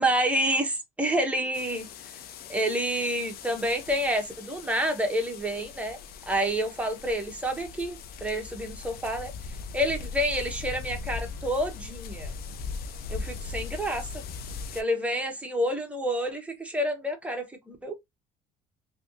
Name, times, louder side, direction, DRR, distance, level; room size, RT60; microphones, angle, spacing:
voice 1, 0.0-1.9 2.5-6.0 6.3-9.3 9.7-12.3 13.1-14.1 14.7-17.9, equal, 10° right, 1.0 m, -28 dB
sound 1, 1.5-14.8, left 5 dB, 65° left, 0.5 m, -39 dB
3.2 x 2.8 x 2.5 m
cardioid pair, 110°, 17 cm